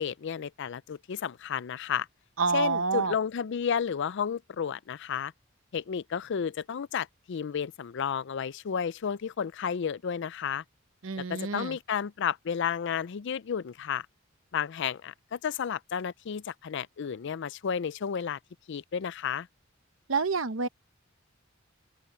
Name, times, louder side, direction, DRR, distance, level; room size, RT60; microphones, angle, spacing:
voice 1, 0.0-2.1 2.5-5.3 5.7-10.6 11.2-14.1 14.5-18.4 18.7-19.5, left 7 dB, 60° left, 0.4 m, -32 dB
voice 2, 2.4-3.1 11.0-11.8 20.1-20.7, right 5 dB, 70° right, 0.9 m, -28 dB
open air
head